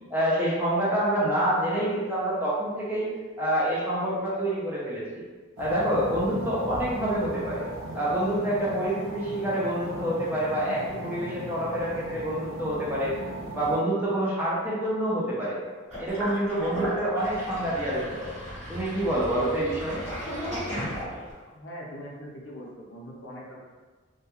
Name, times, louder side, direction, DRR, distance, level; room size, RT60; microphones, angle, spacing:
voice 1, 0.1-3.1 3.4-5.2 5.6-7.7 7.9-13.1 13.5-15.6 16.0-18.3 18.7-20.0, right 1 dB, 10° right, -8 dB, 0.5 m, -27 dB
sound 1, 5.6-13.8, right 1 dB, 70° right, 0.5 m, -38 dB
Sink (filling or washing), 15.9-21.5, equal, 35° right, 1.1 m, -35 dB
voice 2, 21.5-23.6, equal, 60° left, -3 dB, 0.5 m, -41 dB
2.2 x 2.2 x 2.9 m, 1.4 s
head